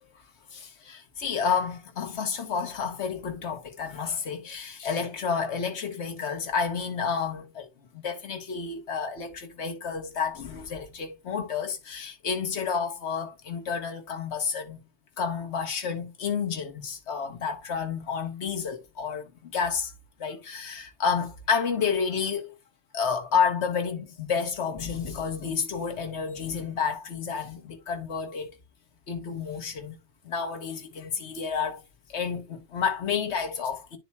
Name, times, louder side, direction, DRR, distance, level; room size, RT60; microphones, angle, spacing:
voice 1, 0.5-7.7 7.9-14.8 15.2-19.9 20.2-22.5 22.9-28.6 29.1-30.0 30.2-31.8 32.1-34.0, left 6 dB, 80° left, 1.5 m, -30 dB
11.5 x 4.2 x 2.2 m
omnidirectional pair, 1.1 m